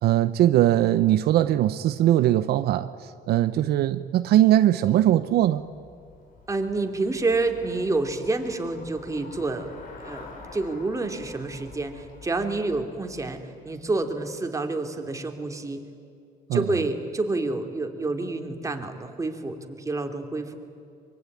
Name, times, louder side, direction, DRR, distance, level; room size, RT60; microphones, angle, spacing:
voice 1, 0.0-5.6 16.5-16.8, right 13 dB, 70° right, 12 dB, 0.8 m, -21 dB
Traffic noise roadway noise / Bicycle, 5.1-14.2, left 3 dB, 55° left, 4.6 m, -48 dB
voice 2, 6.5-9.7 10.0-15.8 16.5-20.6, right 3 dB, 20° right, 5 dB, 2.7 m, -28 dB
24.5 x 23.0 x 9.5 m, 2.4 s
cardioid pair, 110°, 17 cm